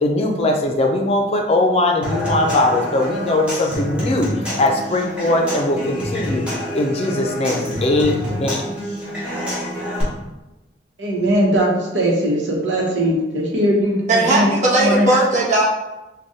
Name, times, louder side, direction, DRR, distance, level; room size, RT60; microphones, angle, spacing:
voice 1, 0.0-4.3 4.6-6.5 6.7-8.6, left 2 dB, 35° left, 2 dB, 0.5 m, -20 dB
Human voice / Acoustic guitar / Percussion, 2.0-10.0, equal, 5° right, 1.2 m, -27 dB
voice 2, 11.0-14.5 14.8-15.1, equal, 85° right, -2 dB, 0.9 m, -19 dB
voice 3, 14.1-15.6, right 2 dB, 45° right, -6 dB, 1.0 m, -17 dB
4.7 x 2.2 x 2.7 m, 1.0 s
head